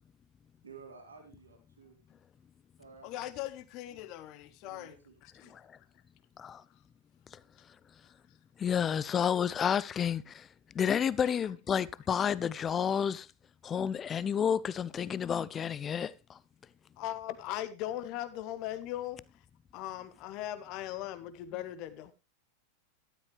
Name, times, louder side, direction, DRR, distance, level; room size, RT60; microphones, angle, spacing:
voice 1, 0.6-2.0 2.8-3.1 4.6-5.1 5.4-5.5, right 5 dB, 75° right, 3.9 m, -53 dB
voice 2, 3.0-5.5 11.2-11.4 17.0-19.2 19.7-22.1, left 13 dB, 40° left, 1.4 m, -39 dB
voice 3, 8.6-10.5 10.7-13.3 13.6-16.4, left 8 dB, 25° left, 0.6 m, -30 dB
12.5 x 12.5 x 3.3 m
figure-of-eight pair, 90°, 0 cm